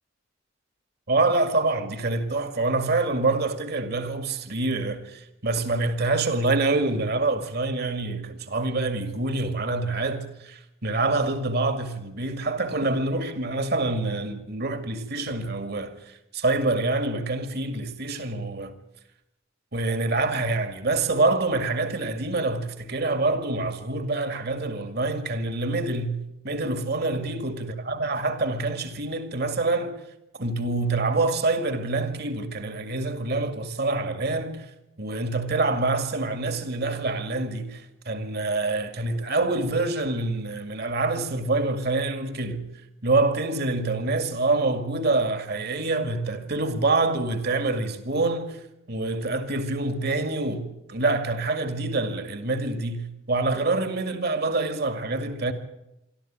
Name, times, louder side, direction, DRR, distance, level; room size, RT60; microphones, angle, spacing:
voice 1, 1.1-18.7 19.7-26.2 26.4-30.0 30.3-34.7 35.0-42.6 43.0-48.6 48.9-55.5, right 2 dB, 55° right, 2.2 m, -26 dB
24.0 x 13.5 x 8.9 m
head